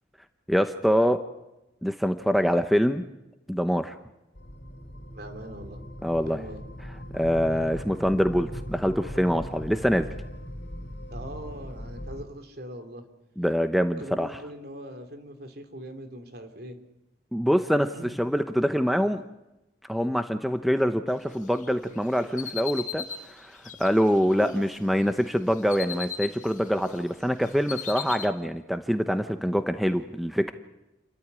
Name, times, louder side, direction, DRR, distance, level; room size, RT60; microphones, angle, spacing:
voice 1, 0.5-1.2 1.8-3.0 3.5-4.0 6.0-6.4 7.1-10.1 13.4-14.3 17.3-17.9 18.2-19.2 19.9-30.5, equal, ahead, 8 dB, 0.8 m, -25 dB
sound 1, 4.3-12.2, equal, 85° left, 2.9 m, -39 dB
voice 2, 5.1-5.8 6.3-6.6 11.1-13.0 14.0-16.8 17.9-18.2 24.4-24.6, right 1 dB, 55° right, 6 dB, 3.2 m, -41 dB
sound 2, 21.5-24.8 25.2-27.0 27.2-28.3, left 8 dB, 45° left, 2.2 m, -38 dB
29.0 x 14.0 x 9.8 m, 0.96 s
head